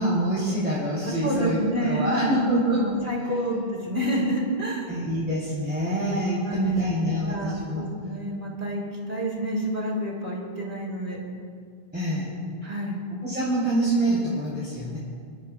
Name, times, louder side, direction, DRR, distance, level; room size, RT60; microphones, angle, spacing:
voice 1, 0.0-2.9 3.3-3.5 4.9-7.8 11.9-12.3 13.2-15.0, right 1 dB, 10° right, -8 dB, 3.3 m, -26 dB
voice 2, 1.1-2.4 2.8-4.9 6.4-6.8 7.0-11.2 12.6-13.0, right 1 dB, 55° right, -3 dB, 3.1 m, -29 dB
28.5 x 12.0 x 2.4 m, 2.2 s
omnidirectional pair, 1.0 m